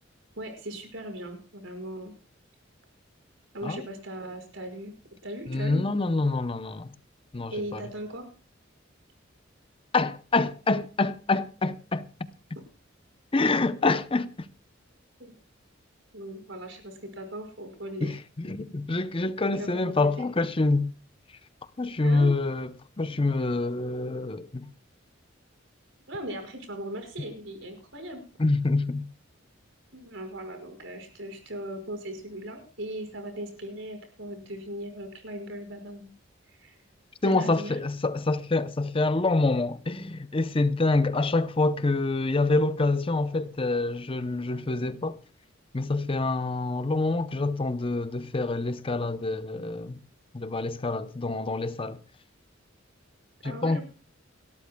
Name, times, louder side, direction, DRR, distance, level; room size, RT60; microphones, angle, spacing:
voice 1, 0.4-2.1 3.5-4.9 5.2-6.0 7.5-8.3 15.2-15.3 16.1-18.2 19.5-20.3 22.0-22.4 26.1-28.3 29.9-36.1 36.5-36.8 37.2-37.7 53.4-53.8, right 1 dB, 70° right, 5.4 m, -38 dB
voice 2, 5.5-6.9 7.3-7.8 9.9-12.1 13.3-14.5 18.0-20.9 21.8-22.7 23.0-24.7 28.4-29.0 37.2-45.2 45.7-50.0 50.3-52.0 53.4-53.8, left 3 dB, 30° left, 0.7 m, -26 dB
29.0 x 13.0 x 2.3 m
head